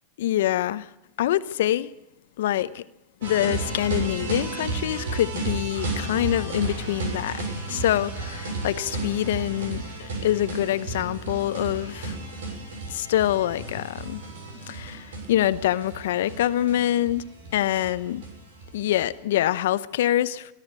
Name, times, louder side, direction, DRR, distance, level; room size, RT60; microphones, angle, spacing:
voice 1, 0.2-0.8 1.2-1.9 2.4-2.8 3.2-7.4 7.7-12.2 12.9-14.2 14.7-17.2 17.5-18.2 18.7-20.5, left 13 dB, 70° left, 0.8 m, -25 dB
sound 1, 3.2-19.1, right 3 dB, 80° right, 7.0 m, -33 dB
22.5 x 12.5 x 9.5 m
hypercardioid pair, 90°, 0 cm